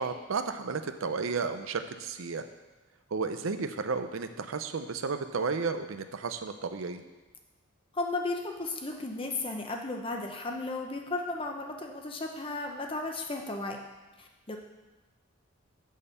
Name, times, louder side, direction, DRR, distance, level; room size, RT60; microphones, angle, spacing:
voice 1, 0.0-2.4 3.1-7.0, right 4 dB, 85° right, 9 dB, 0.6 m, -33 dB
voice 2, 7.9-13.8 14.2-14.6, left 2 dB, 25° left, 2 dB, 0.8 m, -34 dB
6.5 x 5.4 x 6.8 m, 1.2 s
head